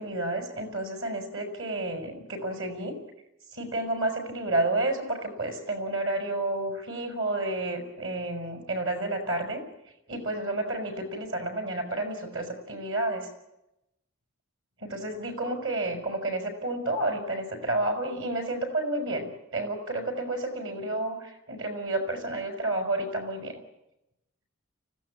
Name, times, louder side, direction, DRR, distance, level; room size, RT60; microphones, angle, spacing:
voice 1, 0.0-3.0 3.5-9.6 10.1-13.3 14.8-23.6, right 2 dB, 65° right, 5 dB, 5.8 m, -30 dB
25.0 x 16.5 x 8.7 m, 0.90 s
head